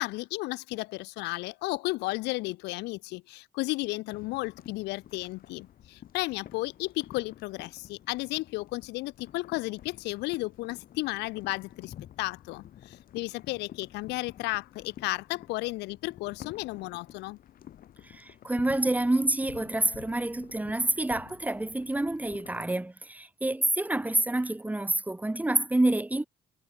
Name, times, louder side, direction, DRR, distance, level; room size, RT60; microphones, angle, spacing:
voice 1, 0.0-17.4, left 21 dB, 90° left, 0.9 m, -33 dB
sound 1, 4.1-22.6, left 11 dB, 60° left, 4.1 m, -50 dB
voice 2, 18.0-26.3, right 2 dB, 10° right, 2.2 m, -28 dB
cardioid pair, 110°, 17 cm